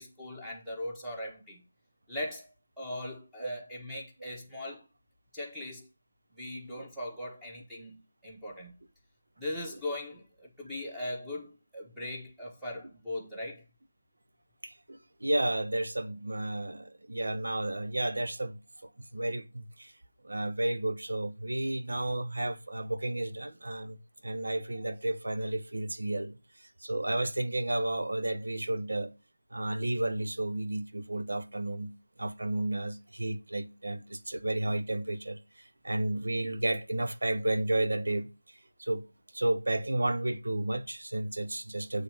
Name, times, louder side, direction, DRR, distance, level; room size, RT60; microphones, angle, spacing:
voice 1, 0.0-1.6 2.1-4.9 5.3-5.9 6.3-8.7 9.4-13.6, left 1 dB, ahead, 1.4 m, -39 dB
voice 2, 14.6-18.6 19.1-19.9 20.2-24.0 24.2-29.1 29.5-31.9 32.2-39.0 39.3-42.0, right 1 dB, 65° right, 0.9 m, -32 dB
8.7 x 3.3 x 6.1 m
figure-of-eight pair, 160°, 0 cm